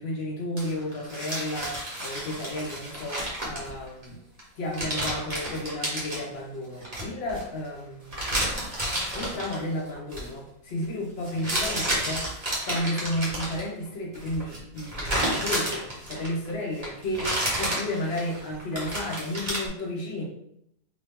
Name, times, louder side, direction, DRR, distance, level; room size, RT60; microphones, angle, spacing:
voice 1, 0.0-4.2 4.6-8.3 9.1-17.3 17.6-20.3, left 1 dB, 50° left, -2 dB, 1.0 m, -32 dB
sound 1, 0.6-4.0 4.4-4.5 4.7-6.2 6.8-7.4 8.1-9.6 10.0-10.3 11.2-13.7 14.1-16.5 16.8-19.7, right 1 dB, 30° right, 1.0 m, -31 dB
3.0 x 2.7 x 3.5 m, 0.75 s
omnidirectional pair, 1.7 m